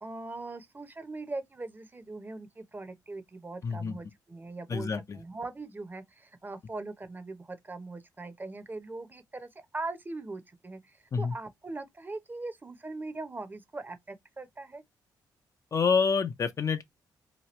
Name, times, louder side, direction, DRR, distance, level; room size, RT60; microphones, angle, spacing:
voice 1, 0.0-14.8, right 3 dB, 25° right, 0.7 m, -41 dB
voice 2, 3.6-4.0 4.7-5.2 11.1-11.3 15.7-16.8, left 5 dB, 40° left, 0.5 m, -27 dB
2.9 x 2.2 x 3.0 m
cardioid pair, 75°, 8 cm